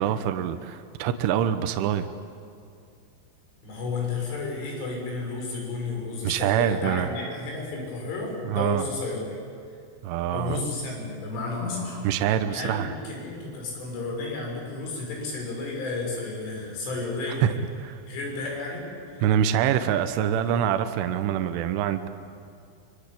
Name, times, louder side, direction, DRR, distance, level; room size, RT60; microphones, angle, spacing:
voice 1, 0.0-2.1 6.2-7.1 8.4-8.8 10.0-10.6 12.0-12.9 17.4-17.5 17.8-18.0 19.2-22.1, right 10 dB, 75° right, 9 dB, 3.3 m, -25 dB
voice 2, 3.6-9.4 10.3-12.0 12.5-17.5 18.1-19.2, left 3 dB, 70° left, 0 dB, 8.5 m, -32 dB
25.0 x 24.5 x 8.5 m, 2.4 s
omnidirectional pair, 5.9 m